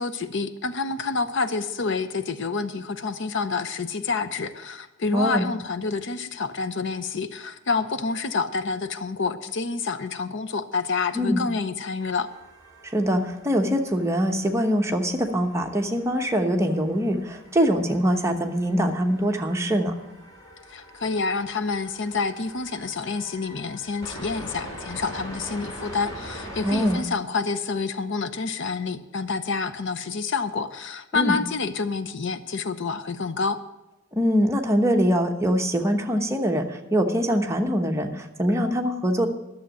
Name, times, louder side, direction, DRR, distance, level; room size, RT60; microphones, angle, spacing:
voice 1, 0.0-12.3 20.7-33.6, left 4 dB, 65° left, 12 dB, 0.7 m, -28 dB
voice 2, 5.1-5.5 11.1-11.4 12.8-19.9 26.6-27.0 31.1-31.4 34.1-39.3, equal, 15° right, 3 dB, 1.0 m, -23 dB
sound 1, 12.0-27.0, equal, 20° left, 2.9 m, -43 dB
12.0 x 7.2 x 9.1 m, 0.97 s
head